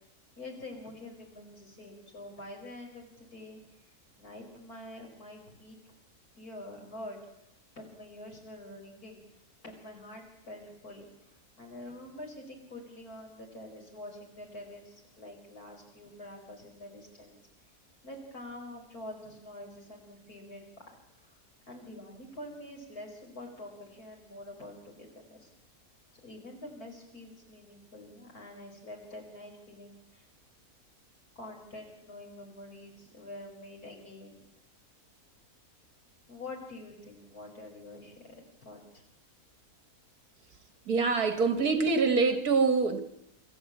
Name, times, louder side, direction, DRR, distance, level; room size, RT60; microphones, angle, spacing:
voice 1, 0.4-3.6 4.2-5.8 6.4-7.2 7.8-9.2 9.6-17.4 18.0-20.9 21.2-21.4 21.7-25.5 26.2-30.3 31.4-34.4 36.3-39.0, left 1 dB, 70° left, 5.4 m, -46 dB
voice 2, 40.9-43.0, right 4 dB, 70° right, 2.2 m, -25 dB
25.0 x 13.5 x 8.6 m
omnidirectional pair, 1.7 m